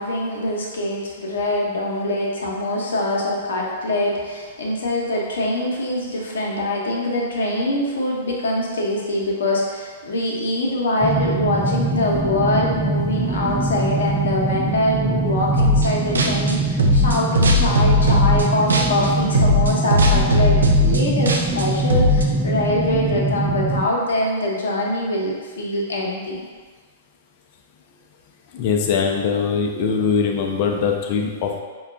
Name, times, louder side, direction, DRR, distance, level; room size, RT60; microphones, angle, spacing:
voice 1, 0.0-26.4, left 1 dB, 75° left, -2 dB, 0.8 m, -23 dB
sound 1, 11.0-23.9, right 2 dB, 10° right, 0.3 m, -23 dB
sound 2, 15.6-15.9 16.2-19.1 19.3-22.2, left 1 dB, 85° right, 0.4 m, -17 dB
voice 2, 28.5-31.6, left 6 dB, 50° left, 2 dB, 0.5 m, -21 dB
5.2 x 2.3 x 2.5 m, 1.5 s
hypercardioid pair, 115°, 0 cm